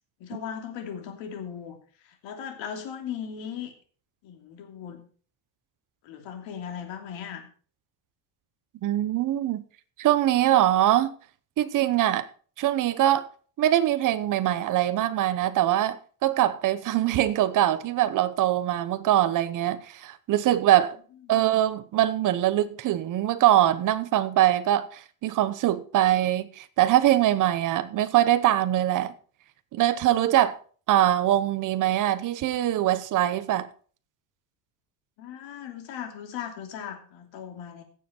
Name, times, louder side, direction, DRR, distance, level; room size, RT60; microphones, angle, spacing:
voice 1, 0.2-1.8 2.0-3.7 4.2-5.0 6.0-7.4 21.3-21.4 35.2-37.8, left 8 dB, 70° left, 3.0 m, -38 dB
voice 2, 8.8-9.6 10.0-11.1 11.6-12.3 12.6-13.3 13.6-21.0 21.3-29.1 29.7-30.6 30.9-33.7, right 13 dB, 40° right, 0.9 m, -23 dB
16.0 x 7.5 x 4.5 m
cardioid pair, 155°, 47 cm